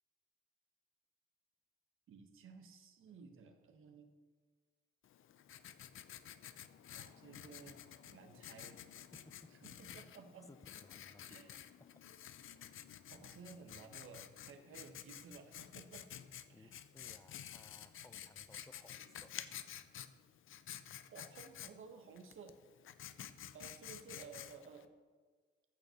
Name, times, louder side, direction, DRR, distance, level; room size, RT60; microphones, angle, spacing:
voice 1, 2.1-4.1 6.9-8.8 9.6-10.5 11.3-11.5 13.1-16.1 16.5-16.8 21.1-22.6 23.5-24.9, right 5 dB, 75° right, 6 dB, 1.5 m, -55 dB
Writing, 5.0-24.9, left 10 dB, 75° left, 0.7 m, -52 dB
voice 2, 10.5-11.9 12.5-12.8 16.5-19.5 23.2-23.3, left 2 dB, 15° left, 11 dB, 0.6 m, -62 dB
14.0 x 6.7 x 6.6 m, 1.5 s
cardioid pair, 105°, 21 cm